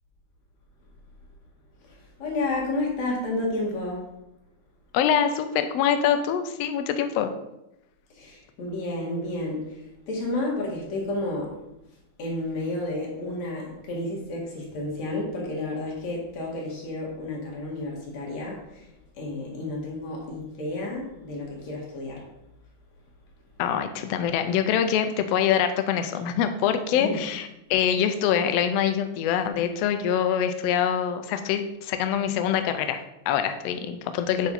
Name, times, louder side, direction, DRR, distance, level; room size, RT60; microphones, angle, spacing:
voice 1, 1.9-4.1 8.1-11.5 12.2-18.9 19.2-22.3 26.9-27.2, left 2 dB, 65° left, -3 dB, 3.0 m, -31 dB
voice 2, 4.9-7.3 23.6-34.5, left 9 dB, 85° left, 8 dB, 1.4 m, -24 dB
8.1 x 4.9 x 4.2 m, 0.89 s
omnidirectional pair, 3.5 m